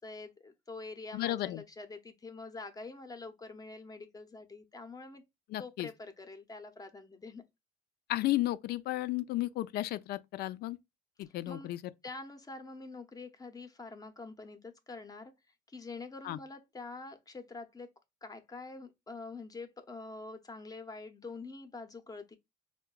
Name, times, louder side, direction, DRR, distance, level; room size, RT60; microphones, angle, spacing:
voice 1, 0.0-5.2 5.6-7.4 11.3-11.7 12.0-15.3 15.7-17.9 18.2-22.4, left 3 dB, 20° left, 0.7 m, -46 dB
voice 2, 1.1-1.6 5.5-5.9 8.1-10.8 11.2-11.8 16.2-16.4, left 16 dB, 70° left, 0.4 m, -33 dB
4.6 x 2.2 x 2.2 m
cardioid pair, 110°, 17 cm